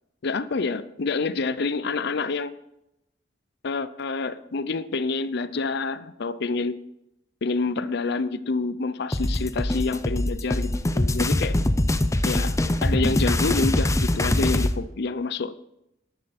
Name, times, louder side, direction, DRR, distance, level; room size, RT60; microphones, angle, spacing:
voice 1, 0.2-2.5 3.6-6.8 7.4-11.6 12.2-15.5, left 3 dB, 65° left, 15 dB, 0.6 m, -27 dB
sound 1, 9.1-14.7, left 1 dB, 15° left, 0.6 m, -23 dB
11.5 x 11.0 x 4.2 m, 0.84 s
head